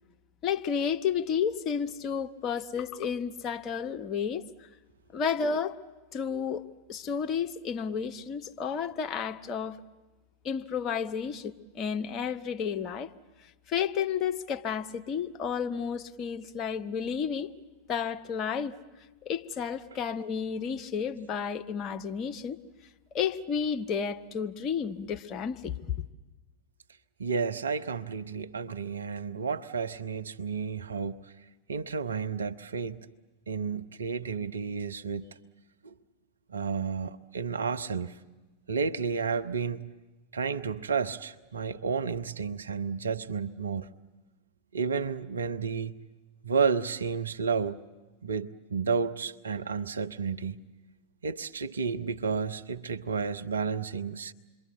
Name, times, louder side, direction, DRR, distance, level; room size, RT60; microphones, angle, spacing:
voice 1, 0.4-4.4 5.1-5.7 6.1-6.6 6.9-9.8 10.4-13.1 13.7-17.5 17.9-18.7 19.2-22.6 23.1-25.9, left 7 dB, 30° left, 1.1 m, -31 dB
voice 2, 27.2-31.3 31.7-33.0 33.5-35.3 35.8-35.9 36.5-38.2 38.7-39.9 40.3-43.9 44.7-45.9 46.4-47.8 48.2-50.6 51.2-54.3, right 5 dB, 70° right, 0.8 m, -31 dB
27.5 x 22.5 x 8.2 m
figure-of-eight pair, 90°, 0 cm